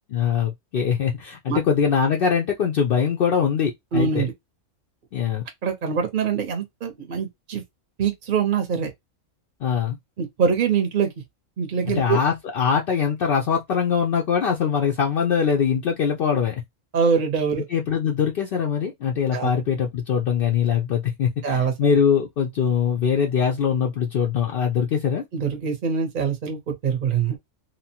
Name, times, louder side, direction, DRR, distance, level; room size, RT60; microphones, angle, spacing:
voice 1, 0.1-4.2 5.1-5.5 9.6-10.0 11.9-16.5 17.7-25.2, left 7 dB, 70° left, 0.5 m, -22 dB
voice 2, 3.9-4.3 5.6-7.6 8.0-8.9 10.2-11.1 11.6-12.2 16.9-17.6 19.3-19.5 21.4-21.9 25.3-27.4, right 6 dB, 45° right, 0.7 m, -24 dB
2.9 x 2.1 x 2.8 m
omnidirectional pair, 1.5 m